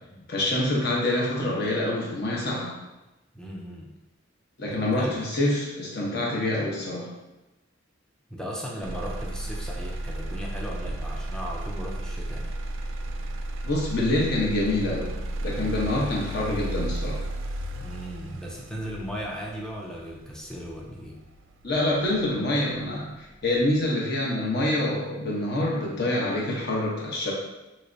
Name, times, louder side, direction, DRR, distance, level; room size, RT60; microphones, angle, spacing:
voice 1, 0.3-2.7 4.6-7.1 13.6-15.1 15.4-17.2 21.6-27.3, left 1 dB, 55° left, -3 dB, 0.8 m, -26 dB
voice 2, 3.3-3.9 4.7-5.2 8.3-12.6 17.7-21.2, equal, 5° left, -2 dB, 0.4 m, -37 dB
Motor vehicle (road), 8.8-22.8 23.3-23.8, right 1 dB, 80° right, 0.3 m, -34 dB
3.3 x 3.1 x 2.6 m, 1.0 s
head